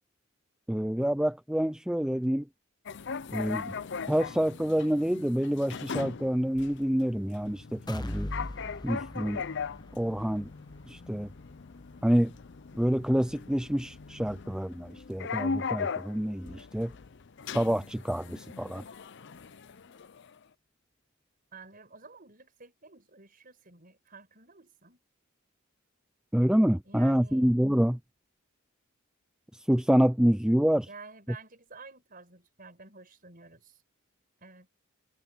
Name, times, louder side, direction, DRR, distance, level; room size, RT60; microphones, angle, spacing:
voice 1, 0.7-2.4 3.3-3.7 4.1-8.3 8.8-9.4 10.0-10.5 10.9-11.3 12.0-12.3 12.7-16.9 17.5-18.8 26.3-28.0 29.7-30.9, equal, 5° right, 0.4 m, -27 dB
sound 1, 2.9-20.4, left 5 dB, 55° left, 0.6 m, -39 dB
sound 2, 7.9-15.7 16.1-16.2 16.6-16.7, left 1 dB, 20° left, 0.8 m, -44 dB
voice 2, 21.5-25.0 26.8-27.5 30.9-33.8 34.4-34.7, right 4 dB, 40° right, 5.1 m, -51 dB
head